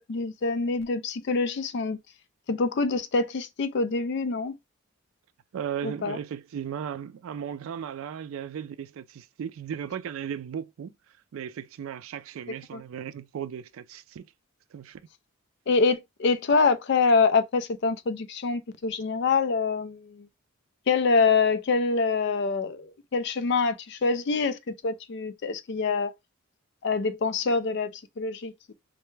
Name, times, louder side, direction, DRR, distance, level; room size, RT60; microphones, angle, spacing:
voice 1, 0.0-2.0 2.5-4.6 5.8-6.2 12.7-12.8 15.7-20.3 20.9-26.1 26.8-27.9 28.2-28.5, left 4 dB, 50° left, 0.4 m, -25 dB
voice 2, 5.5-10.9 11.3-14.3 14.7-15.0, right 8 dB, 70° right, 0.3 m, -36 dB
3.2 x 2.1 x 3.1 m
head